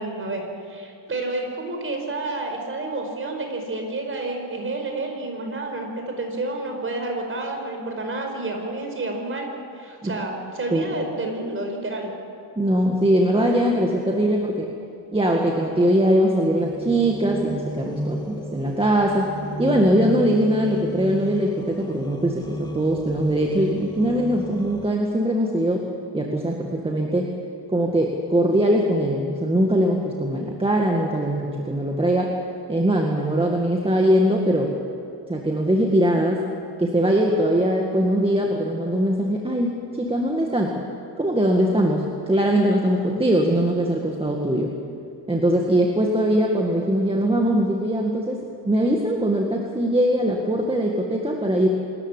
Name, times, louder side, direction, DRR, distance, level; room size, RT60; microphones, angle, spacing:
voice 1, 0.0-9.5 9.7-12.1, right 2 dB, 30° right, 3 dB, 5.0 m, -30 dB
voice 2, 10.7-11.0 12.6-14.7 15.1-19.3 19.6-25.8 26.1-27.3 27.7-32.3 32.7-34.7 35.3-36.4 36.8-40.8 41.2-44.7 45.3-51.7, right 1 dB, 15° right, 0 dB, 2.0 m, -21 dB
sound 1, 16.6-24.9, left 1 dB, 10° left, 1.8 m, -34 dB
26.0 x 14.0 x 10.0 m, 2.6 s
cardioid pair, 140°, 43 cm